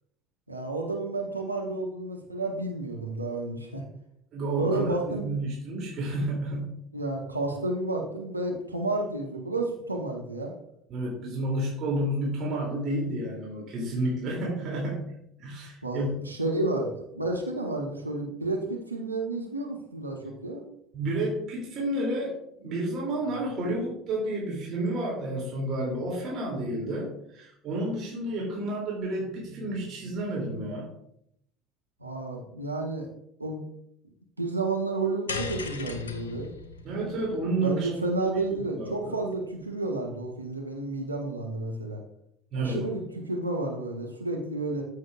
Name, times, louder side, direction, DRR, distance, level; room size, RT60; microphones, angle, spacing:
voice 1, 0.5-3.8 4.6-5.3 6.9-10.5 15.8-20.6 32.0-33.1 33.4-33.6 34.4-36.5 37.6-42.0 42.6-44.8, right 2 dB, 85° right, 0 dB, 1.0 m, -31 dB
voice 2, 4.3-6.8 10.9-15.1 15.4-16.1 20.9-30.9 36.8-37.9 38.3-38.4 38.7-39.1 42.5-42.8, right 1 dB, 40° right, -4 dB, 2.7 m, -30 dB
sound 1, 35.3-39.7, left 4 dB, 75° left, 0.7 m, -39 dB
13.5 x 6.4 x 2.4 m, 0.76 s
figure-of-eight pair, 65°, 0 cm